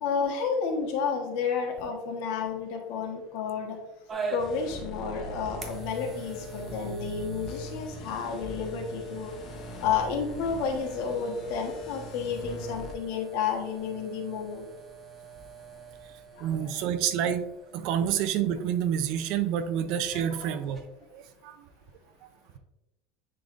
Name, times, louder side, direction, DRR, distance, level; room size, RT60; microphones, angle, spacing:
voice 1, 0.0-3.8 4.3-9.3 9.8-14.7 16.3-16.7 20.1-20.5, left 6 dB, 65° left, 1 dB, 1.4 m, -31 dB
sound 1, 4.1-20.8, right 3 dB, 20° right, 0.9 m, -44 dB
sound 2, 4.4-12.9, equal, 40° left, 0.8 m, -42 dB
voice 2, 16.4-17.4 17.7-20.8 21.1-21.7, right 9 dB, 55° right, 10 dB, 0.6 m, -28 dB
10.5 x 3.9 x 2.6 m, 0.91 s
supercardioid pair, 145°, 0 cm